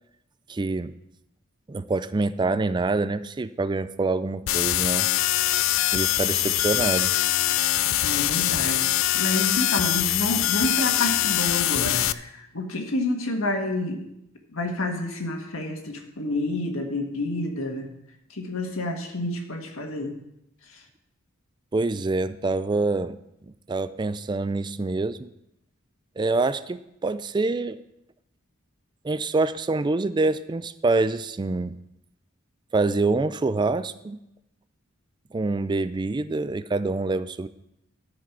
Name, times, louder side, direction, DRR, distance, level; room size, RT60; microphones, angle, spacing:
voice 1, 0.5-0.9 1.7-5.1 5.9-7.1 21.7-23.2 23.4-25.3 26.2-27.8 29.0-31.8 32.7-34.2 35.3-37.5, right 3 dB, 20° right, 14 dB, 0.4 m, -26 dB
sound 1, 4.5-12.1, left 14 dB, 70° left, 0.4 m, -23 dB
voice 2, 8.0-14.1 14.5-17.9 18.3-20.2 20.7-20.8, left 1 dB, 90° left, 3 dB, 1.7 m, -29 dB
13.5 x 5.0 x 6.0 m, 0.84 s
head